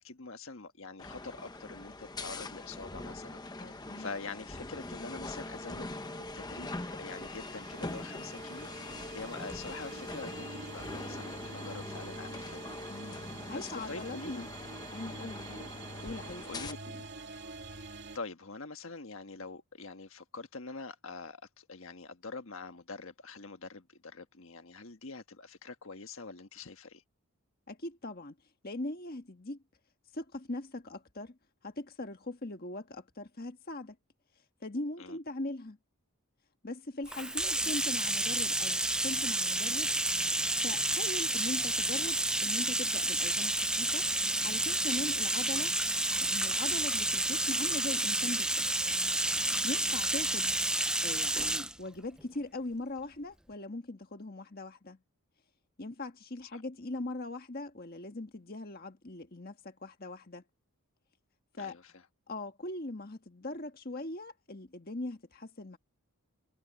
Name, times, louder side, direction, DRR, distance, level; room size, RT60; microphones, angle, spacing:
voice 1, 0.0-6.7 7.0-8.7 9.1-12.7 13.2-14.4 15.5-15.7 16.5-16.8 18.1-27.0 35.0-35.2 49.8-50.0 56.5-56.6 61.6-61.9, left 3 dB, 65° left, 1.5 m, -45 dB
sound 1, 1.0-16.7, left 2 dB, 20° left, 0.9 m, -43 dB
voice 2, 3.6-4.1 12.9-13.2 13.5-14.5 14.9-15.5 16.0-17.0 27.7-28.3 28.6-29.6 30.1-31.4 31.6-34.0 34.6-35.8 36.6-39.9 40.6-44.1 44.4-45.8 46.2-48.6 49.6-50.5 51.0-55.0 55.8-60.4 61.6-61.8 62.3-65.8, left 2 dB, 40° left, 1.6 m, -40 dB
sound 2, 5.9-18.2, right 3 dB, 50° right, 3.1 m, -47 dB
Bathtub (filling or washing), 37.1-51.7, right 1 dB, 5° right, 0.5 m, -30 dB
head